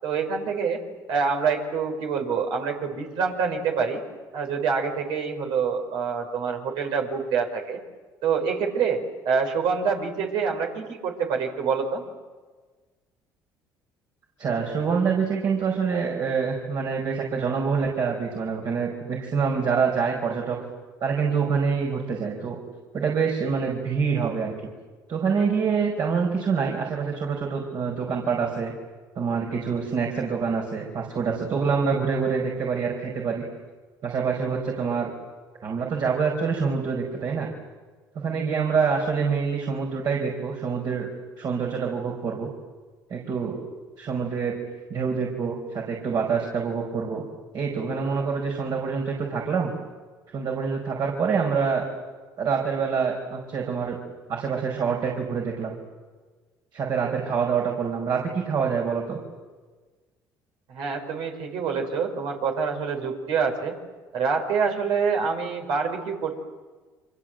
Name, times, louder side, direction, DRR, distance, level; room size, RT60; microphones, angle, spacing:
voice 1, 0.0-0.8 1.1-4.0 4.3-7.8 8.2-12.0 60.7-63.8 64.1-66.4, right 5 dB, 75° right, 3 dB, 5.4 m, -26 dB
voice 2, 14.4-20.6 21.0-22.6 22.9-24.5 25.1-28.7 29.1-33.4 34.0-35.1 35.6-37.5 38.1-41.1 41.4-42.5 43.1-43.6 44.0-44.5 44.9-47.2 47.5-49.7 50.3-51.8 52.4-54.0 54.3-55.7 56.7-59.2, right 5 dB, 55° right, 0 dB, 5.2 m, -26 dB
29.5 x 25.0 x 7.9 m, 1.4 s
supercardioid pair, 80°, 8 cm